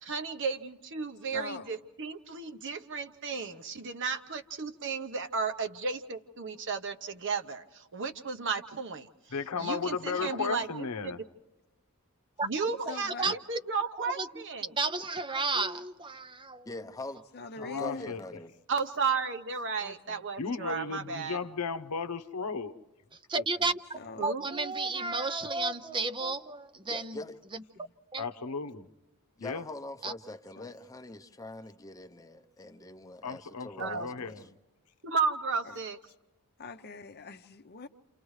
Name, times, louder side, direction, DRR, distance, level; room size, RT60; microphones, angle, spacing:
voice 1, 0.0-11.1 12.4-13.1 13.5-14.7 18.7-21.4 24.2-24.4 33.8-34.1 35.0-36.0, right 5 dB, 55° right, 0.9 m, -34 dB
voice 2, 1.3-1.7 10.2-10.4 12.9-13.4 17.3-18.1 19.8-20.3 23.9-24.3 27.8-27.9 30.6-30.7 35.7-35.8 36.6-37.9, left 3 dB, 45° left, 0.7 m, -43 dB
voice 3, 9.3-11.2 17.6-18.2 20.4-22.7 23.3-23.4 28.2-28.9 29.4-29.6 33.2-34.4, left 5 dB, 90° left, 0.8 m, -35 dB
voice 4, 12.9-13.3 14.2-16.7 23.1-27.2 27.5-27.6 28.1-28.3 30.0-30.1, right 3 dB, 20° right, 0.5 m, -32 dB
voice 5, 16.6-17.2 17.6-18.5 26.9-27.4 29.4-34.5, left 2 dB, 15° left, 0.8 m, -43 dB
29.5 x 28.5 x 3.2 m
head